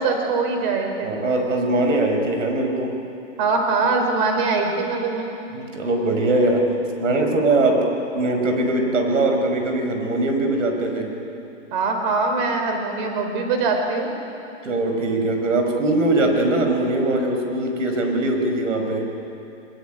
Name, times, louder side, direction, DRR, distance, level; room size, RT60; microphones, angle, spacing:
voice 1, 0.0-1.1 3.4-5.3 11.7-14.1, right 4 dB, 40° right, 4 dB, 4.1 m, -22 dB
voice 2, 1.0-2.9 5.5-6.6 7.0-11.1 14.6-19.1, right 2 dB, 85° right, 3 dB, 5.8 m, -21 dB
22.5 x 22.5 x 9.1 m, 2.8 s
hypercardioid pair, 155°, 37 cm